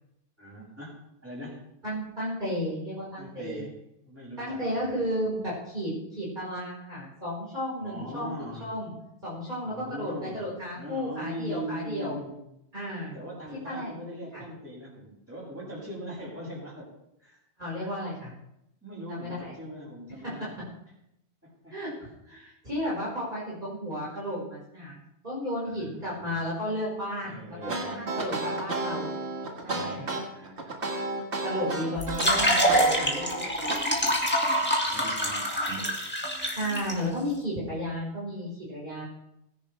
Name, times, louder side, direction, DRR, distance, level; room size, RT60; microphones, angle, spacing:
voice 1, 0.4-0.9 1.2-1.6 3.2-3.7 4.0-4.8 5.4-5.5 7.8-8.8 9.6-10.4 10.7-12.4 13.0-16.9 17.2-17.4 17.8-17.9 18.8-20.6 21.4-22.1 25.6-26.4 27.2-28.4 29.7-31.3 34.1-34.2 34.5-36.1, equal, 10° right, -6 dB, 6.7 m, -41 dB
voice 2, 1.8-3.7 4.4-8.3 8.6-8.9 9.2-12.2 12.7-13.2 13.6-13.9 14.3-14.4 17.6-18.3 19.1-19.5 20.2-20.4 21.7-24.9 25.2-29.1 29.6-30.1 31.4-33.7 36.5-39.0, equal, 45° right, -8 dB, 5.0 m, -33 dB
sound 1, 27.6-33.8, right 2 dB, 75° right, 2.1 m, -32 dB
sound 2, 32.0-36.9, equal, 10° left, 2.1 m, -26 dB
21.0 x 10.5 x 3.4 m, 0.85 s
omnidirectional pair, 1.1 m